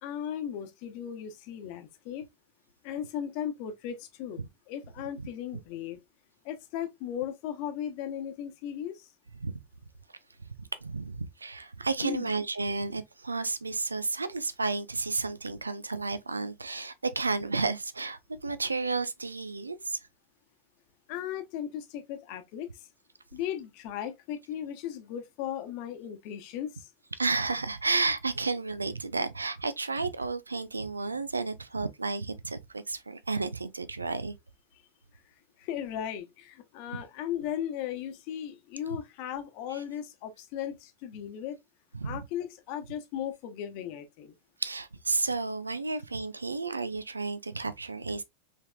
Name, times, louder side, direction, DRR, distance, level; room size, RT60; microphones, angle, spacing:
voice 1, 0.0-2.3 2.8-6.0 6.4-9.1 12.0-12.3 21.1-22.9 23.3-26.9 35.6-41.6 42.0-44.3, left 10 dB, 45° left, 1.0 m, -37 dB
voice 2, 10.5-20.0 27.2-34.3 39.7-39.8 41.9-42.2 44.6-48.2, right 3 dB, 80° right, 0.4 m, -32 dB
5.4 x 3.4 x 2.3 m
figure-of-eight pair, 90°, 0 cm